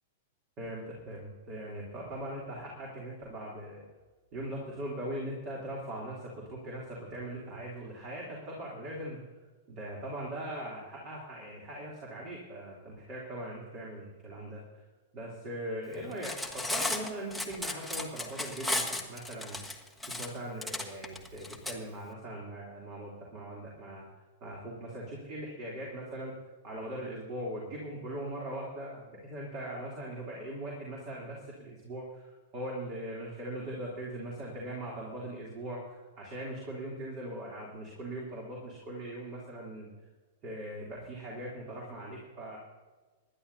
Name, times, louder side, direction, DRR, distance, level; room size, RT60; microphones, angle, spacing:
voice 1, 0.6-3.8 4.3-9.2 9.7-14.8 15.1-19.6 20.0-24.1 24.4-26.3 26.6-39.9 40.4-42.6, right 1 dB, 35° right, -3 dB, 3.2 m, -40 dB
Cutlery silverware, 16.1-21.7, left 2 dB, ahead, 1.4 m, -34 dB
25.5 x 11.5 x 2.8 m, 1.3 s
figure-of-eight pair, 100°, 0 cm